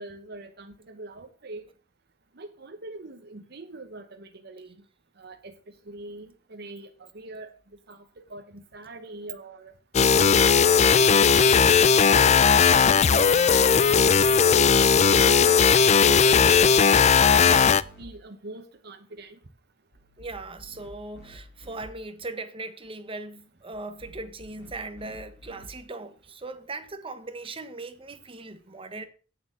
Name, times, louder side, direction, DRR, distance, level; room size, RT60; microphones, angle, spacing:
voice 1, 0.0-1.7 2.4-4.7 5.2-5.5 5.9-7.5 7.9-9.7 10.2-12.5 12.9-14.5 14.8-19.4, right 2 dB, 60° right, 1.0 m, -42 dB
sound 1, 9.9-17.8, left 6 dB, 35° left, 0.4 m, -18 dB
sound 2, 19.9-21.8 23.7-25.7, left 1 dB, 60° left, 5.2 m, -50 dB
voice 2, 20.2-29.0, right 2 dB, 30° right, 1.2 m, -39 dB
8.7 x 7.8 x 6.4 m
head